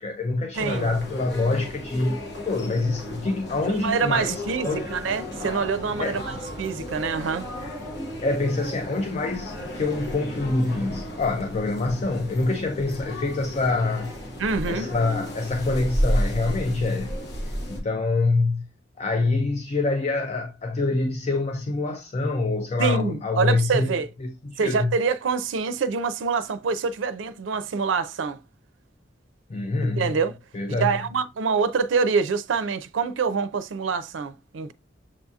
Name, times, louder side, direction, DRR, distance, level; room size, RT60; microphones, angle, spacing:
voice 1, 0.0-4.9 6.0-6.2 7.6-7.7 8.2-14.1 14.7-17.1 17.4-18.7 19.0-25.0 29.5-30.1 30.5-31.0, left 3 dB, 35° left, 0.4 m, -26 dB
sound 1, 0.5-17.8, equal, 60° left, 1.1 m, -33 dB
voice 2, 0.6-0.9 3.7-7.5 14.4-14.9 22.8-24.1 24.6-28.4 30.0-30.3 30.8-34.7, right 5 dB, 90° right, 0.4 m, -25 dB
7.2 x 2.7 x 2.3 m
head